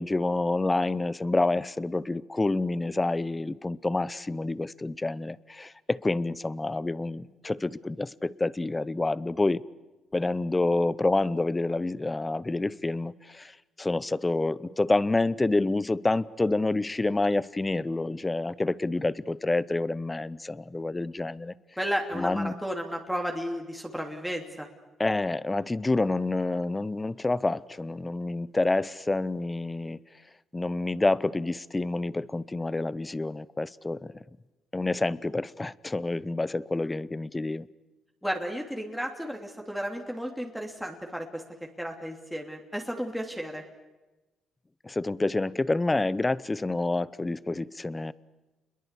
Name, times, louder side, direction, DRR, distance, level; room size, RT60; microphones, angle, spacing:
voice 1, 0.0-9.6 10.1-13.5 13.8-21.5 22.1-22.5 25.0-30.0 30.5-34.1 34.7-37.7 44.8-48.1, left 2 dB, 20° left, 19 dB, 0.8 m, -28 dB
voice 2, 21.8-24.7 38.2-41.4 41.8-43.6, equal, ahead, 2 dB, 3.0 m, -33 dB
29.0 x 22.0 x 8.4 m, 1.1 s
cardioid pair, 90°, 0 cm